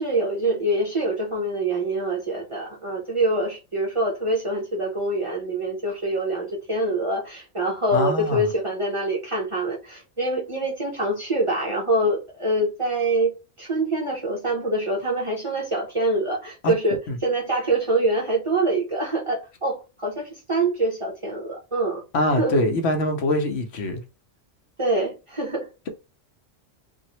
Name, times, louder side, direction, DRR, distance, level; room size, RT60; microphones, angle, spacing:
voice 1, 0.0-13.3 13.6-22.0 22.4-22.6 24.8-25.7, right 2 dB, 30° right, 0.7 m, -25 dB
voice 2, 7.9-8.5 16.6-16.7 17.1-17.2 22.1-24.0, left 1 dB, 65° left, 1.0 m, -23 dB
3.0 x 2.6 x 2.9 m
omnidirectional pair, 1.2 m